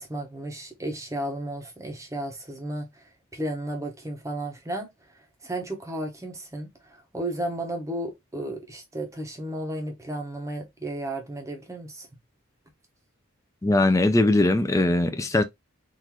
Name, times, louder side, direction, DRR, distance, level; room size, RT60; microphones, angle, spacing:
voice 1, 0.0-12.1, right 1 dB, 15° right, 0.8 m, -34 dB
voice 2, 13.6-15.4, left 2 dB, 15° left, 0.4 m, -20 dB
3.7 x 2.5 x 2.9 m
head